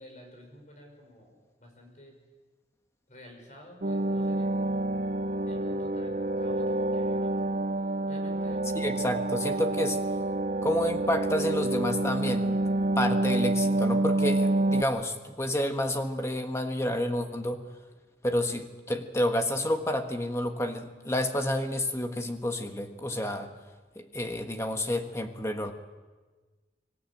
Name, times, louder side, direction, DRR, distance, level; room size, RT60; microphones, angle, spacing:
voice 1, 0.0-2.2 3.1-5.1 5.5-7.3 8.1-8.6, equal, 45° left, 2 dB, 5.9 m, -51 dB
sound 1, 3.8-14.8, right 2 dB, 45° right, 0.6 m, -28 dB
voice 2, 8.7-10.0 10.6-12.6 12.9-17.6 18.2-23.5 23.9-25.7, left 1 dB, 15° left, 5 dB, 1.5 m, -30 dB
25.5 x 14.0 x 8.8 m, 1.3 s
head